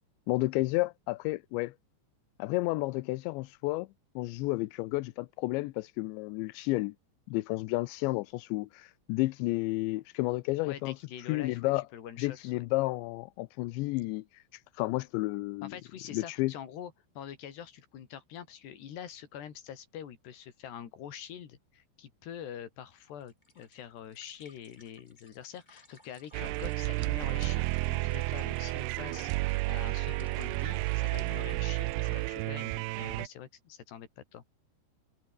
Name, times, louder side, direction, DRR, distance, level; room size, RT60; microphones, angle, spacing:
voice 1, 0.3-1.7 2.4-3.9 4.2-6.9 7.3-10.9 11.3-11.8 12.2-15.7 16.1-16.5, left 21 dB, 80° left, 3.0 m, -31 dB
voice 2, 10.6-12.5 15.6-34.4, left 9 dB, 65° left, 4.8 m, -45 dB
sound 1, 23.0-32.5, left 1 dB, 10° left, 7.2 m, -59 dB
sound 2, 26.3-33.3, right 22 dB, 85° right, 2.4 m, -31 dB
omnidirectional pair, 5.2 m